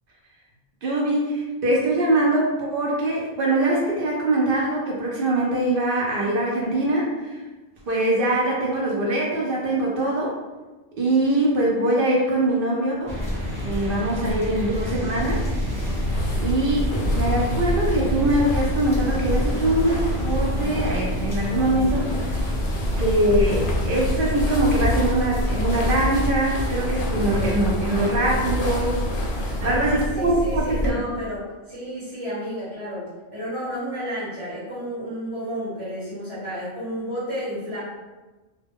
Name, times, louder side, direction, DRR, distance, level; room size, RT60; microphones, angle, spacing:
voice 1, 0.8-7.4 7.9-10.3 10.9-13.2 13.6-15.4 16.4-22.4 23.0-29.0 29.6-31.0, right 1 dB, 60° right, -3 dB, 0.6 m, -23 dB
sound 1, 13.1-25.9, equal, ahead, 1.1 m, -30 dB
sound 2, 15.2-30.9, equal, 55° left, 0.4 m, -26 dB
voice 2, 29.6-37.8, equal, 30° right, -10 dB, 0.9 m, -32 dB
2.1 x 2.1 x 3.5 m, 1.2 s
omnidirectional pair, 1.2 m